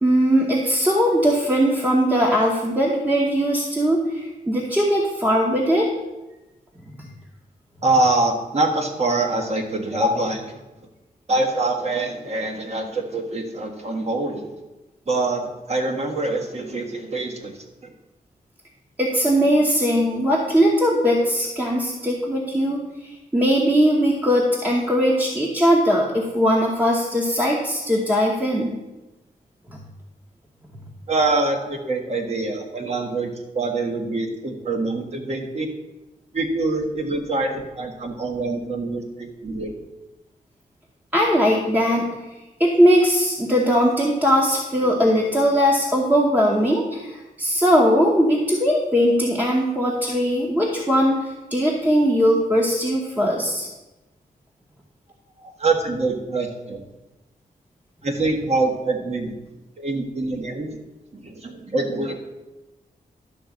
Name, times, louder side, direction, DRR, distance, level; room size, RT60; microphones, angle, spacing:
voice 1, 0.0-5.9 9.9-10.2 19.0-28.7 41.1-42.1 42.6-53.7, equal, 10° right, -2 dB, 1.0 m, -20 dB
voice 2, 7.8-10.4 11.3-14.4 15.1-17.5 17.8-17.9 31.1-35.7 36.3-39.8 55.4-56.8 58.0-59.3 59.8-60.8 61.1-62.1, right 2 dB, 45° right, 3 dB, 1.5 m, -24 dB
11.5 x 3.9 x 7.2 m, 1.1 s
wide cardioid pair, 150°, 15 cm